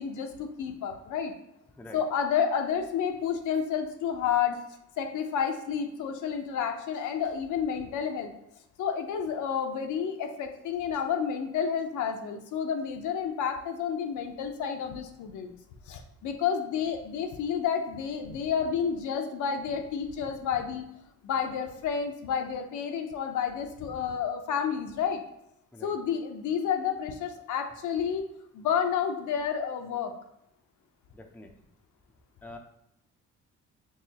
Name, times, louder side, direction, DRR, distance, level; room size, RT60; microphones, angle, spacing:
voice 1, 0.0-1.3 1.9-4.6 5.0-8.3 8.8-15.5 15.9-20.8 21.2-25.2 25.8-28.2 28.5-30.1, left 7 dB, 75° left, 5 dB, 0.7 m, -30 dB
voice 2, 31.1-31.7 32.4-32.6, left 2 dB, 5° left, 3 dB, 0.5 m, -46 dB
4.8 x 3.1 x 2.8 m, 0.82 s
cardioid pair, 90°, 30 cm